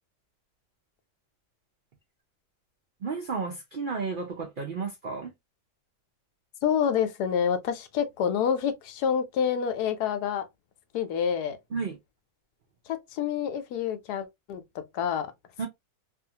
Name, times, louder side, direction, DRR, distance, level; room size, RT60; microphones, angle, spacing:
voice 1, 3.0-5.3 11.7-12.0 15.6-15.7, right 4 dB, 90° right, 0.4 m, -32 dB
voice 2, 6.6-10.4 10.9-11.6 12.9-15.3, left 8 dB, 85° left, 1.1 m, -28 dB
2.7 x 2.4 x 2.7 m
omnidirectional pair, 1.7 m